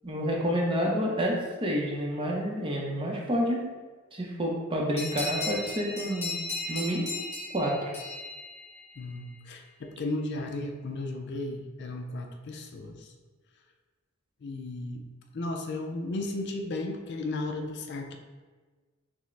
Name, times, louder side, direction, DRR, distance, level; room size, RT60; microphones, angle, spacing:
voice 1, 0.0-3.7 4.1-6.3 6.7-7.0 7.5-7.9, equal, 25° right, -2 dB, 0.7 m, -29 dB
sound 1, 5.0-9.2, left 2 dB, 30° left, 1.0 m, -36 dB
voice 2, 9.0-13.1 14.4-15.0 15.3-18.2, left 2 dB, 55° left, 3 dB, 0.4 m, -35 dB
5.9 x 2.1 x 3.2 m, 1.4 s
head